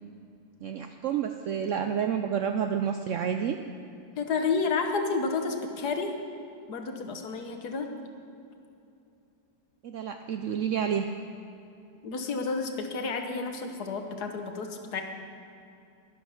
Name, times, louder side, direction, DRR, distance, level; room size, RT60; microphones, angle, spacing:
voice 1, 0.6-3.6 9.8-11.1, right 8 dB, 80° right, 6 dB, 0.7 m, -29 dB
voice 2, 4.2-6.1 6.7-7.9 12.0-15.0, left 4 dB, 65° left, 5 dB, 1.6 m, -30 dB
12.0 x 11.5 x 5.8 m, 2.7 s
omnidirectional pair, 1.9 m